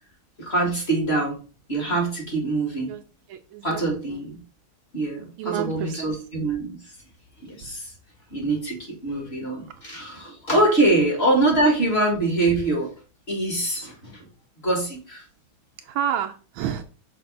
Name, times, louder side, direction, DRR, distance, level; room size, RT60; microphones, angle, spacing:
voice 1, 0.4-1.4 1.7-2.9 3.6-4.4 4.9-6.9 7.4-7.9 8.3-12.9 13.3-14.3 14.6-15.2, right 2 dB, 30° left, 0 dB, 1.9 m, -24 dB
voice 2, 3.3-3.8 4.1-4.2 5.4-6.1 7.6-7.7 10.9-11.1 15.8-16.8, right 9 dB, 75° right, 7 dB, 1.3 m, -30 dB
6.0 x 3.3 x 5.1 m, 0.36 s
omnidirectional pair, 2.4 m